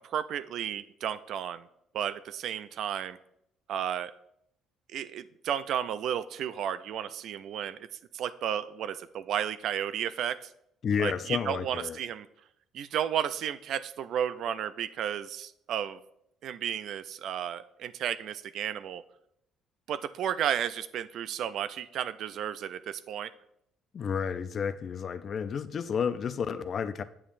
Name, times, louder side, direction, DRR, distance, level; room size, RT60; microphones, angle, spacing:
voice 1, 0.1-1.7 1.9-3.2 3.7-4.1 4.9-7.9 8.1-10.5 11.0-12.3 12.7-16.0 16.4-19.0 19.9-23.3, right 9 dB, 65° right, 14 dB, 0.3 m, -33 dB
voice 2, 10.8-12.0 23.9-27.0, left 7 dB, 45° left, 12 dB, 0.4 m, -31 dB
8.5 x 7.1 x 2.6 m, 0.77 s
cardioid pair, 90°, 0 cm